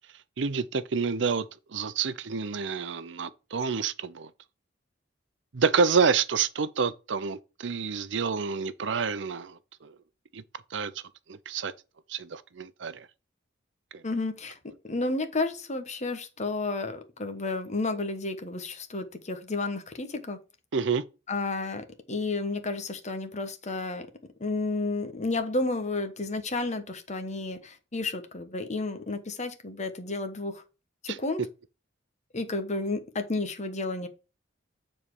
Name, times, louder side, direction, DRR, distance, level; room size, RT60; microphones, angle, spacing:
voice 1, 0.4-4.3 5.5-9.9 10.3-10.4 10.7-10.9 11.3-11.7 12.1-13.1 13.9-14.0 20.7-21.0 31.1-31.2, right 5 dB, 70° right, 0.6 m, -28 dB
voice 2, 14.0-14.6 14.8-20.4 21.3-24.1 24.4-30.6 31.0-31.4 32.3-34.1, left 3 dB, 40° left, 1.2 m, -31 dB
7.2 x 4.3 x 4.7 m
head